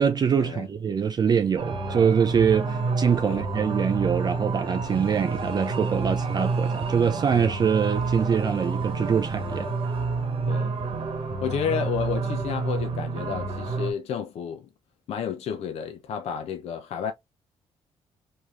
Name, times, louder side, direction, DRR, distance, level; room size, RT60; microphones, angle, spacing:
voice 1, 0.0-9.7, right 7 dB, 35° right, 0.3 m, -24 dB
sound 1, 1.6-13.9, right 4 dB, 55° right, 1.0 m, -29 dB
voice 2, 11.4-14.7 15.1-17.1, left 7 dB, 65° left, 0.5 m, -31 dB
3.0 x 2.7 x 2.3 m
cardioid pair, 75°, 11 cm